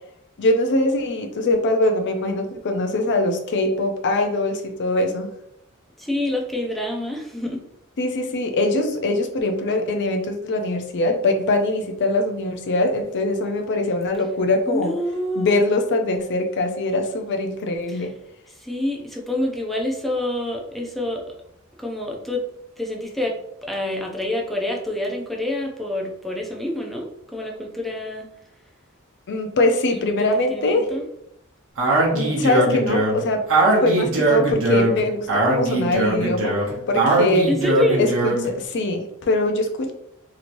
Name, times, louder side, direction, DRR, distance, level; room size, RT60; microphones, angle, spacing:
voice 1, 0.4-5.3 8.0-14.9 15.4-18.1 29.3-30.9 32.1-33.5 33.8-36.5 36.9-37.5 38.0-39.9, left 2 dB, 55° left, 5 dB, 0.4 m, -22 dB
voice 2, 6.0-7.6 14.7-15.6 17.9-18.1 18.6-21.4 21.8-22.4 22.8-23.4 23.6-28.3 29.9-31.0 37.5-38.0, left 1 dB, ahead, -1 dB, 0.5 m, -27 dB
Speech, 31.8-38.5, right 2 dB, 65° right, 0.9 m, -20 dB
2.9 x 2.9 x 2.5 m, 0.77 s
head